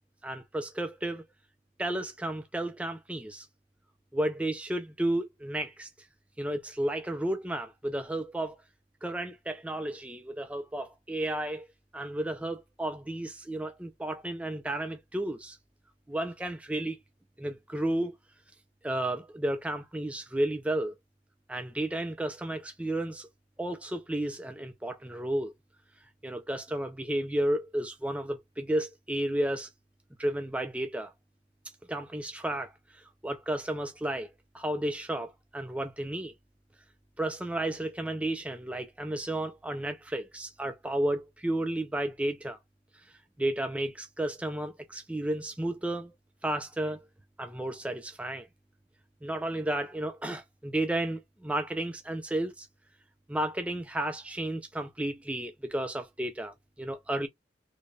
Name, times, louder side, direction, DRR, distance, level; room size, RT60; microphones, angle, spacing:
voice 1, 0.2-1.2 1.8-3.5 4.1-5.9 6.4-8.6 9.0-11.7 11.9-15.6 16.1-17.0 17.4-18.2 18.8-21.0 21.5-23.3 23.6-25.5 26.2-29.7 30.2-31.1 31.9-34.3 34.5-36.3 37.2-42.6 42.9-43.1 43.4-46.1 46.4-47.1 47.4-48.5 49.2-52.7 53.3-57.3, right 1 dB, 5° right, 0.4 m, -32 dB
3.9 x 3.2 x 2.3 m
head